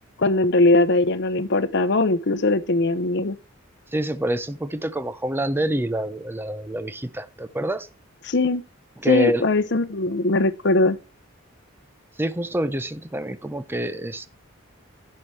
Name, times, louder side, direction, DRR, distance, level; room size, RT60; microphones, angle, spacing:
voice 1, 0.2-3.4 8.3-8.6 9.1-11.0, left 2 dB, 55° left, 0.8 m, -20 dB
voice 2, 3.9-7.9 9.0-9.4 12.2-14.3, right 1 dB, 10° right, 0.6 m, -27 dB
10.5 x 7.6 x 3.3 m
head